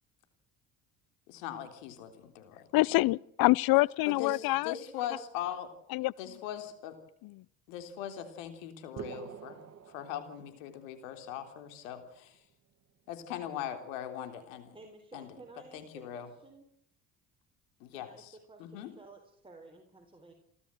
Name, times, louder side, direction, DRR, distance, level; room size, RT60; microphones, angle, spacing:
voice 1, 1.3-2.7 4.1-5.7 6.2-7.0 7.7-9.6 9.9-12.5 13.1-14.8 15.1-15.3 15.7-16.3 17.8-18.9, left 10 dB, 85° left, 3.7 m, -40 dB
voice 2, 2.7-4.7 5.9-6.1, left 20 dB, 65° left, 0.7 m, -25 dB
sound 1, 9.0-10.9, right 7 dB, 45° right, 2.2 m, -45 dB
voice 3, 14.7-16.7 17.9-20.3, right 3 dB, 15° right, 4.3 m, -54 dB
29.5 x 12.5 x 7.6 m
supercardioid pair, 75°, 37 cm